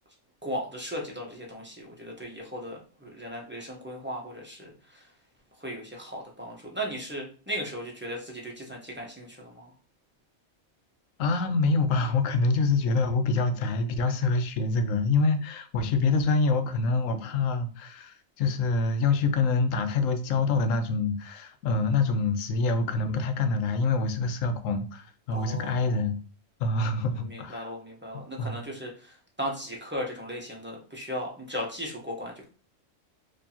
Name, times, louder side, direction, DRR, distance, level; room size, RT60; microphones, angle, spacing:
voice 1, 0.4-5.0 5.6-9.7 25.3-26.0 27.3-32.5, equal, 10° right, -2 dB, 0.8 m, -37 dB
voice 2, 11.2-26.2 26.6-27.7 28.4-28.6, left 3 dB, 80° left, 9 dB, 1.0 m, -26 dB
4.4 x 2.7 x 2.8 m, 0.38 s
omnidirectional pair, 1.3 m